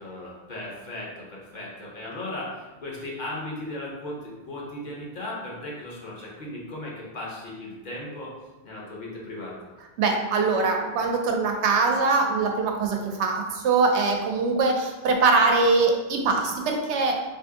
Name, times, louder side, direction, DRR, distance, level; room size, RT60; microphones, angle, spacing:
voice 1, 0.0-8.3 8.6-9.6, left 1 dB, 50° left, -4 dB, 0.8 m, -36 dB
voice 2, 10.0-17.2, right 3 dB, 85° right, 2 dB, 0.9 m, -22 dB
2.8 x 2.6 x 3.5 m, 1.2 s
omnidirectional pair, 1.1 m